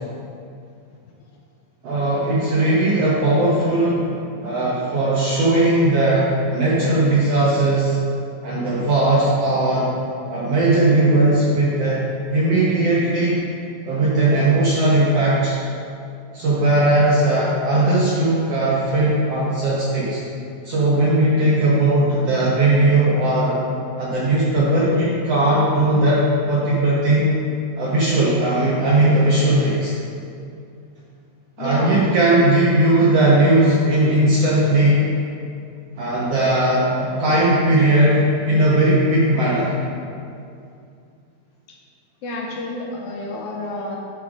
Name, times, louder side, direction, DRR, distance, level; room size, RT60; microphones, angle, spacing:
voice 1, 1.8-4.1 4.4-8.0 8.4-10.0 10.3-12.0 12.3-13.4 13.8-15.6 16.3-20.2 20.6-23.6 24.0-27.4 27.8-30.0 31.6-35.1 36.0-39.7, right 1 dB, 70° right, -6 dB, 1.5 m, -18 dB
voice 2, 31.6-32.0 42.2-44.0, left 1 dB, 75° left, -1 dB, 1.9 m, -30 dB
11.0 x 3.7 x 4.8 m, 2.5 s
omnidirectional pair, 4.1 m